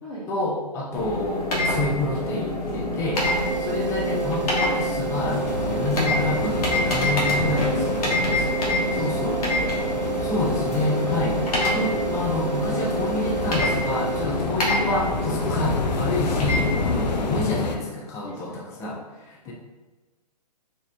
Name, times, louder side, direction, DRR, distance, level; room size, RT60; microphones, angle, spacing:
voice 1, 0.3-3.3 3.6-8.5 9.0-9.4 10.2-11.4 11.7-19.5, left 2 dB, 15° left, -2 dB, 0.5 m, -28 dB
sound 1, 0.9-17.4, left 1 dB, 60° left, 1.3 m, -27 dB
sound 2, 3.1-14.9, right 8 dB, 85° right, 0.5 m, -31 dB
sound 3, 5.1-17.8, left 4 dB, 90° left, 0.5 m, -30 dB
voice 2, 7.6-7.9 8.5-9.9 16.8-17.2 18.2-18.7 19.4-19.5, left 1 dB, 45° left, -9 dB, 1.2 m, -37 dB
4.4 x 2.4 x 3.2 m, 1.3 s
hypercardioid pair, 140°, 21 cm